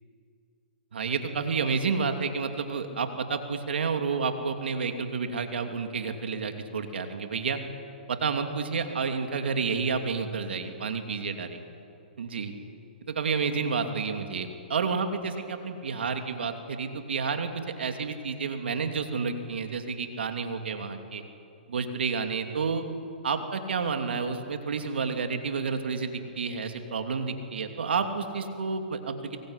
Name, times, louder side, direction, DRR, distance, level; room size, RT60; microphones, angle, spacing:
voice 1, 0.9-7.6 8.1-11.6 12.2-12.5 13.1-21.2 21.7-22.8 23.2-26.1 26.4-29.4, right 5 dB, 80° right, 6 dB, 2.9 m, -30 dB
24.0 x 23.0 x 10.0 m, 2.6 s
hypercardioid pair, 140°, 6 cm